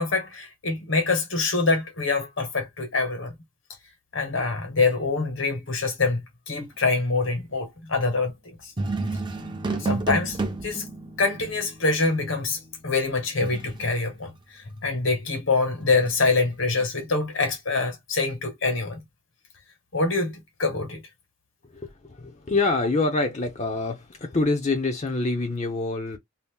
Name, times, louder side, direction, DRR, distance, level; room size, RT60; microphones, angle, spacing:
voice 1, 0.0-3.3 4.1-6.2 6.5-8.3 9.7-10.4 10.6-10.8 11.2-19.0 19.9-21.0, left 3 dB, 70° left, 1.5 m, -25 dB
sound 1, 8.8-14.0 15.8-16.8, right 3 dB, 20° right, 0.6 m, -32 dB
voice 2, 21.6-26.2, left 3 dB, 35° left, 0.6 m, -26 dB
2.8 x 2.5 x 3.5 m
head